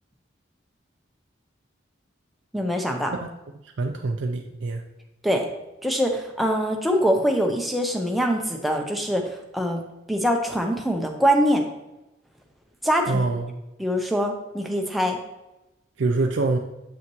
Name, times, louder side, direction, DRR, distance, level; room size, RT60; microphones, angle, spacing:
voice 1, 2.5-3.1 5.2-5.4 5.8-9.2 9.5-9.8 10.1-11.6 12.8-13.3 13.8-15.2, equal, ahead, 1 dB, 0.7 m, -23 dB
voice 2, 3.6-4.8 13.1-13.6 16.0-16.6, right 3 dB, 80° right, 2 dB, 0.5 m, -25 dB
7.8 x 5.8 x 3.0 m, 0.96 s
head